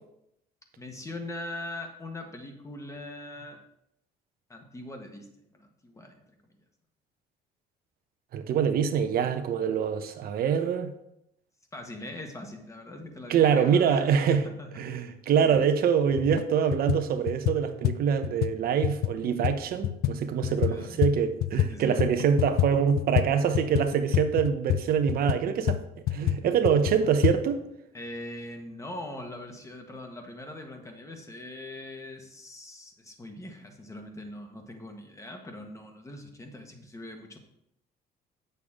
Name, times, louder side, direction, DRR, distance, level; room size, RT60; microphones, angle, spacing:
voice 1, 0.8-3.6 4.5-6.2 11.7-14.9 15.4-15.7 20.5-21.0 21.7-22.1 27.9-37.4, left 1 dB, 20° left, 1.4 m, -42 dB
voice 2, 8.3-10.9 13.3-14.4 14.8-25.8 26.1-27.6, right 7 dB, 60° right, 0.9 m, -25 dB
sound 1, 16.1-16.5 16.7-21.7 22.0-27.4, left 12 dB, 65° left, 0.5 m, -28 dB
8.3 x 6.8 x 3.6 m
cardioid pair, 110°, 17 cm